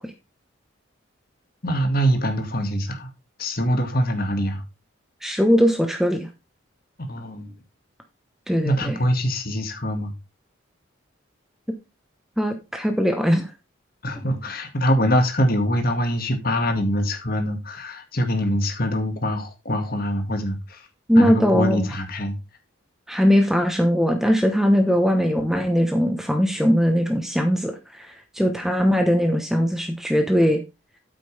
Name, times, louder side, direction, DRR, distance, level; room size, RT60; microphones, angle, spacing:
voice 1, 1.6-3.1 3.4-4.6 7.0-7.5 8.6-10.1 14.0-20.9 21.2-22.4, equal, 45° left, 1.9 m, -24 dB
voice 2, 5.2-6.3 8.5-9.0 12.4-13.5 21.1-21.9 23.1-30.6, equal, ahead, 1.0 m, -20 dB
9.1 x 8.1 x 3.4 m
head